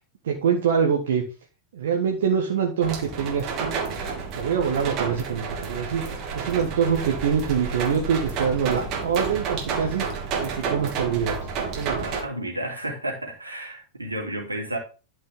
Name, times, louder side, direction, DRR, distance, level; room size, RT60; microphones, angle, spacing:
voice 1, 0.2-1.2 1.7-3.8 4.4-6.0 6.3-10.0 10.4-11.3 11.8-12.1, right 7 dB, 60° right, 1 dB, 1.6 m, -24 dB
sound 1, 2.8-12.2, right 5 dB, 40° right, 2.4 m, -30 dB
voice 2, 12.0-14.8, right 1 dB, 80° right, 1 dB, 3.1 m, -32 dB
12.0 x 5.4 x 3.7 m, 0.33 s
figure-of-eight pair, 90°, 0 cm